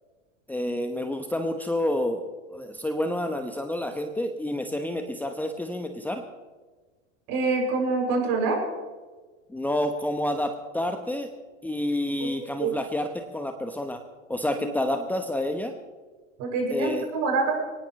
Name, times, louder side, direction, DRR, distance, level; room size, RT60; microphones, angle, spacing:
voice 1, 0.5-6.2 9.5-11.3 11.6-14.0 14.3-15.7 16.7-17.1, left 1 dB, 5° left, 6 dB, 1.1 m, -29 dB
voice 2, 7.3-8.6 12.2-12.3 12.6-12.7 14.5-14.6 16.4-17.5, right 3 dB, 50° right, 0 dB, 7.0 m, -25 dB
23.5 x 18.5 x 3.3 m, 1.4 s
hypercardioid pair, 90°, 37 cm